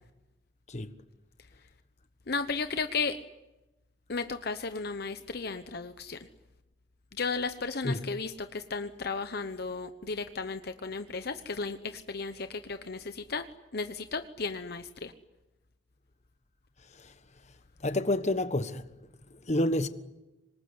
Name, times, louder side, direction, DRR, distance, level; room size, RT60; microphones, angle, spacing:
voice 1, 2.3-3.2 4.1-6.2 7.2-13.4 13.7-15.1, left 4 dB, 60° left, 1.0 m, -34 dB
voice 2, 16.8-17.1 17.8-18.9 19.3-19.9, left 1 dB, 40° left, 1.3 m, -29 dB
26.0 x 20.5 x 9.7 m
head